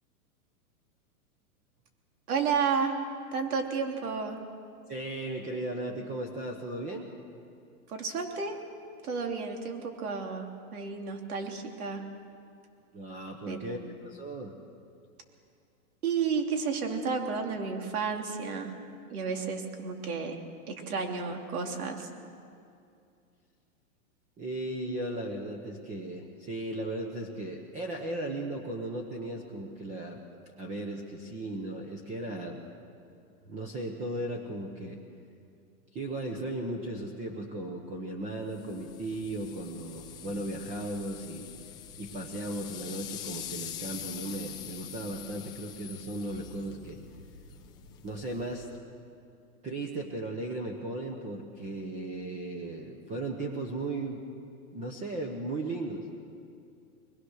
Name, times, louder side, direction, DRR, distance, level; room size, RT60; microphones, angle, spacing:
voice 1, 2.3-3.0 3.3-4.4 7.9-8.6 9.0-12.0 13.5-13.8 16.0-18.7 19.1-20.4 20.7-22.1, right 5 dB, 75° right, 3 dB, 3.3 m, -32 dB
voice 2, 4.9-7.1 12.9-14.5 24.4-30.2 30.6-32.6 33.5-35.0 35.9-41.5 42.0-47.0 48.0-48.7 49.6-54.2 54.7-56.1, right 1 dB, 15° right, 2 dB, 1.1 m, -36 dB
sound 1, 38.5-48.8, left 9 dB, 10° left, 0.6 m, -44 dB
22.5 x 21.0 x 6.6 m, 2.4 s
supercardioid pair, 165°, 44 cm